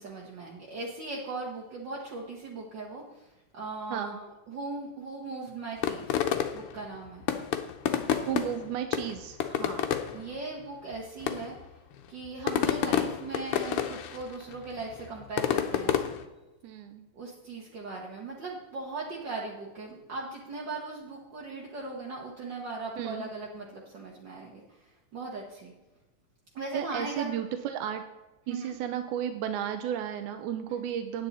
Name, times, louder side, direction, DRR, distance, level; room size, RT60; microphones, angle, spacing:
voice 1, 0.0-3.3 3.5-6.2 6.5-7.3 9.5-9.8 10.1-11.6 12.1-16.0 17.1-25.7 26.5-27.3 28.5-28.8 30.7-30.8, right 3 dB, 50° right, -3 dB, 1.4 m, -39 dB
sound 1, 5.8-6.8 7.2-8.7 8.9-10.2 10.9-11.0 11.2-11.6 12.3-14.2 14.5-16.2, left 10 dB, 80° left, 1.2 m, -28 dB
voice 2, 8.3-9.4 12.5-12.7 16.6-17.0 23.0-23.3 26.7-28.0 28.5-31.3, right 9 dB, 85° right, 7 dB, 2.1 m, -33 dB
9.3 x 9.0 x 4.1 m, 1.1 s
omnidirectional pair, 3.4 m